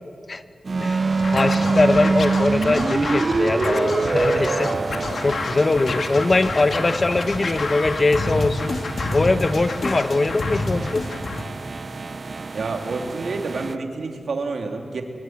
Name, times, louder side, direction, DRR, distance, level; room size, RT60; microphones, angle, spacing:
sound 1, 0.6-13.7, right 4 dB, 50° right, 0.7 m, -26 dB
Scratching (performance technique), 1.1-11.5, left 3 dB, 65° left, 2.0 m, -29 dB
voice 1, 1.3-4.7 5.2-8.7 9.1-11.0, left 2 dB, 40° left, 10 dB, 1.3 m, -21 dB
voice 2, 12.5-15.0, right 3 dB, 80° right, 3 dB, 3.1 m, -28 dB
24.5 x 22.0 x 9.5 m, 2.2 s
wide cardioid pair, 95°, 0 cm